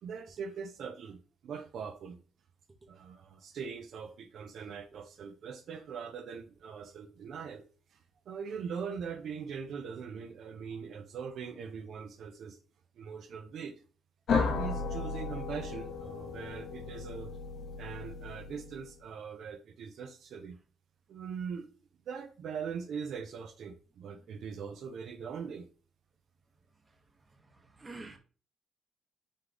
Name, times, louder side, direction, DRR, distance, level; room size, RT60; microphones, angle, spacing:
voice 1, 0.0-2.2 2.9-7.6 7.9-12.6 13.0-13.8 14.4-17.3 17.8-20.6 21.1-21.7 22.1-25.7, right 6 dB, 70° right, 0.5 m, -41 dB
sound 1, 14.3-19.0, left 4 dB, 60° left, 0.6 m, -35 dB
voice 2, 27.5-28.2, right 3 dB, 25° right, 0.9 m, -47 dB
3.4 x 3.2 x 3.8 m
cardioid pair, 90°, 0 cm